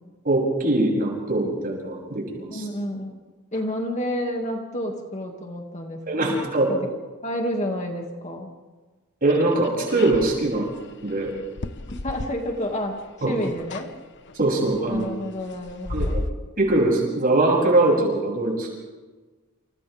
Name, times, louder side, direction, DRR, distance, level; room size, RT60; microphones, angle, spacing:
voice 1, 0.2-2.6 6.1-6.7 9.2-10.7 11.0-11.3 13.2-13.3 14.3-15.1 15.9-16.1 16.6-18.8, right 2 dB, 40° right, -1 dB, 7.7 m, -22 dB
voice 2, 2.5-3.2 3.5-6.3 6.7-6.9 7.2-8.5 11.9-13.9 14.9-16.2, left 1 dB, 30° left, 2 dB, 2.4 m, -30 dB
sound 1, 9.3-12.9 13.2-13.9 14.3-16.3, left 2 dB, 55° left, 1.0 m, -33 dB
29.5 x 29.0 x 3.6 m, 1.3 s
head